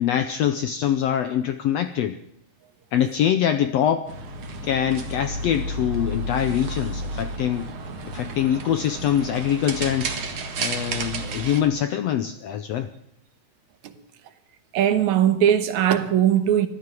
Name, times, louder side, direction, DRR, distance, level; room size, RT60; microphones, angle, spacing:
voice 1, 0.0-2.2 2.9-4.1 4.6-7.7 8.1-12.9, left 10 dB, 80° left, 1.5 m, -24 dB
sound 1, 4.1-11.6, right 2 dB, 45° right, 2.1 m, -32 dB
voice 2, 14.7-16.7, right 10 dB, 65° right, 2.4 m, -19 dB
14.5 x 12.5 x 7.5 m
omnidirectional pair, 3.8 m